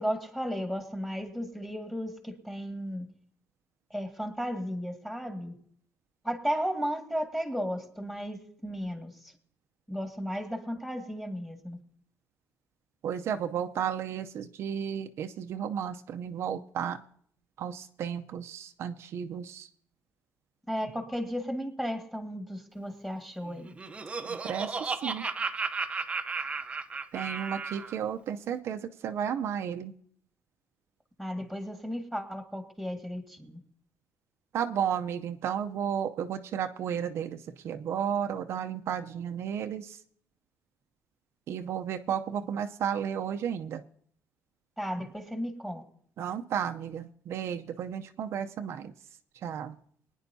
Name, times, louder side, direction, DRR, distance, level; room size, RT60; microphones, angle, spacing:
voice 1, 0.0-3.1 3.9-5.5 6.2-9.3 9.9-11.8 20.7-23.7 31.2-33.6 44.8-45.8, equal, 5° left, 4 dB, 1.9 m, -34 dB
voice 2, 13.0-17.0 17.6-19.7 24.3-25.2 27.1-29.9 34.5-40.0 41.5-43.8 46.2-48.9 49.4-49.8, right 8 dB, 60° right, 6 dB, 0.6 m, -33 dB
Laughter, 23.5-27.9, right 4 dB, 25° right, 0.7 m, -34 dB
23.0 x 10.0 x 2.7 m, 0.63 s
cardioid pair, 150°, 5 cm